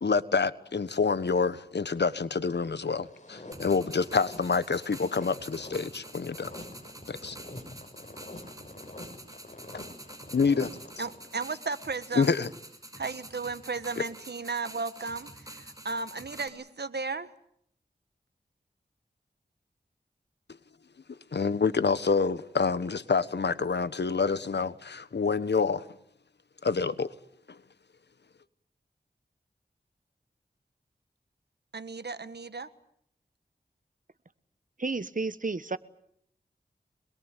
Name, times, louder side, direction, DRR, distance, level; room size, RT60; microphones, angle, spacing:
voice 1, 0.0-6.5 7.1-7.4 10.3-10.7 12.2-12.5 14.0-14.1 21.3-25.8 26.6-27.1 27.5-27.6, left 5 dB, 80° left, 1.2 m, -27 dB
sound 1, 2.9-11.5, left 2 dB, 45° left, 5.3 m, -46 dB
sound 2, 3.5-16.5, right 1 dB, 20° right, 6.0 m, -47 dB
voice 2, 11.0-12.3 13.0-17.3 31.7-32.7, right 4 dB, 75° right, 1.5 m, -35 dB
voice 3, 34.8-35.8, right 3 dB, 50° right, 1.3 m, -31 dB
25.5 x 21.5 x 9.1 m
wide cardioid pair, 45°, 17 cm